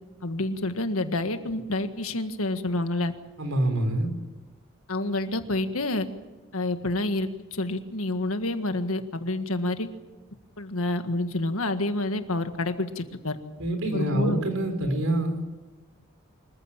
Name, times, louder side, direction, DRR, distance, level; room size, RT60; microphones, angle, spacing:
voice 1, 0.2-3.1 4.9-6.1 6.5-9.9 10.6-13.4 13.9-14.4, left 2 dB, 85° left, 8 dB, 1.7 m, -28 dB
voice 2, 3.4-4.1 13.6-15.5, right 1 dB, 80° right, 7 dB, 4.5 m, -26 dB
25.5 x 15.0 x 8.8 m, 1.2 s
head